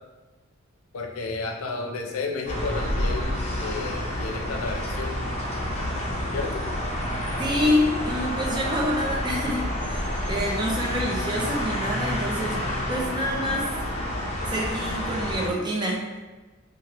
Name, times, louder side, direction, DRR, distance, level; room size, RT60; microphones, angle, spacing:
voice 1, 0.9-5.2 6.3-6.8, left 4 dB, 80° left, 2 dB, 0.5 m, -32 dB
sound 1, 2.5-15.5, equal, 30° left, 0.5 m, -29 dB
voice 2, 7.4-12.6 12.9-13.7 14.5-16.2, left 1 dB, 20° right, -2 dB, 0.4 m, -27 dB
2.8 x 2.4 x 2.9 m, 1.3 s
head